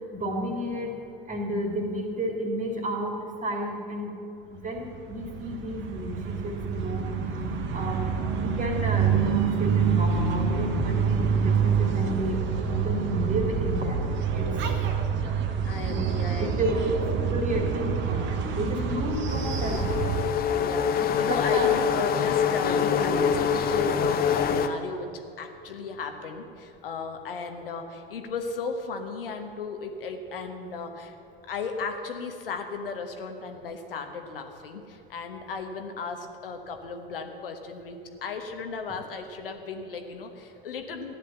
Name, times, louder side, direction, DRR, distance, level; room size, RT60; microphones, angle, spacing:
voice 1, 0.1-0.9 1.3-3.1 3.4-4.1 4.6-7.0 7.4-8.1 8.4-14.0 14.3-14.5 15.6-16.1 16.4-19.8 21.3-21.7, equal, 25° right, 1 dB, 2.8 m, -31 dB
sound 1, 4.8-20.3, right 6 dB, 40° right, 1.4 m, -27 dB
voice 2, 7.8-8.2 15.6-16.7 20.5-25.1 25.4-31.1 31.5-41.2, left 4 dB, 70° left, 5 dB, 1.2 m, -35 dB
sound 2, 19.3-24.7, left 7 dB, 30° left, 0.9 m, -25 dB
14.0 x 10.5 x 7.1 m, 2.7 s
figure-of-eight pair, 75°, 29 cm